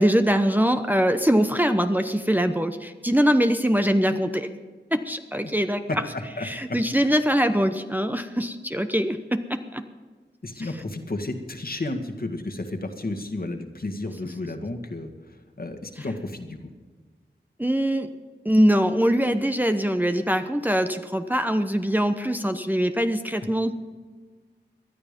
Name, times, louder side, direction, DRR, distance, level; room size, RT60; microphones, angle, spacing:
voice 1, 0.0-4.5 4.9-5.9 6.4-9.8 10.6-10.7 17.6-18.1 18.4-23.7, equal, 10° right, 7 dB, 0.8 m, -22 dB
voice 2, 5.9-7.1 10.4-16.6, left 2 dB, 55° left, 4 dB, 1.8 m, -32 dB
19.0 x 11.5 x 5.2 m, 1.5 s
cardioid pair, 40°, 19 cm